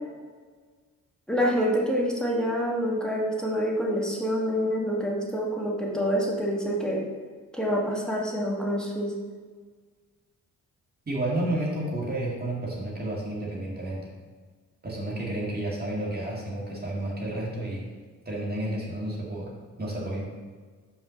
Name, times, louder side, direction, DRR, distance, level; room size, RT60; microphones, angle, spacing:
voice 1, 1.3-7.0 7.5-9.1, equal, ahead, -4 dB, 1.7 m, -27 dB
voice 2, 11.1-14.1 14.8-17.9 18.3-20.2, right 1 dB, 30° right, -5 dB, 2.1 m, -31 dB
5.7 x 4.9 x 6.4 m, 1.5 s
cardioid pair, 110°, 34 cm